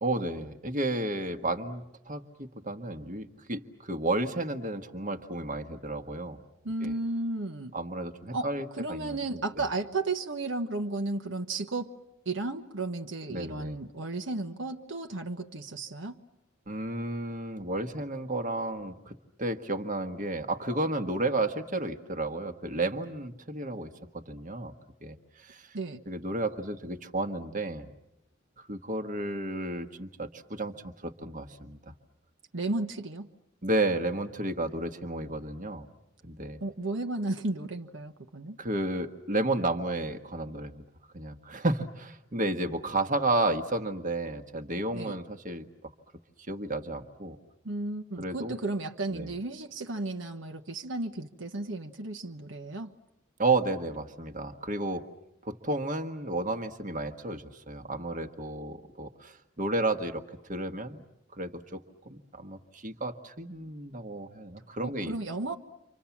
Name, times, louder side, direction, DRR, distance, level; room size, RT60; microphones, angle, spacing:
voice 1, 0.0-6.4 6.8-6.9 7.7-9.4 13.3-13.8 16.7-24.7 25.0-25.7 26.1-27.9 28.6-31.8 33.6-35.9 36.2-36.6 38.6-40.8 41.1-45.6 46.5-47.4 48.2-48.6 49.1-49.3 53.4-55.1 55.4-60.2 60.5-61.0 61.3-61.8 62.0-65.1, right 2 dB, 40° right, 8 dB, 1.5 m, -32 dB
voice 2, 6.6-7.7 8.3-8.5 8.8-11.9 12.2-16.2 25.7-26.0 32.5-33.3 36.6-38.6 44.9-45.2 47.6-52.9 64.8-65.6, right 2 dB, 70° right, 4 dB, 1.2 m, -34 dB
30.0 x 26.0 x 7.3 m, 0.89 s
head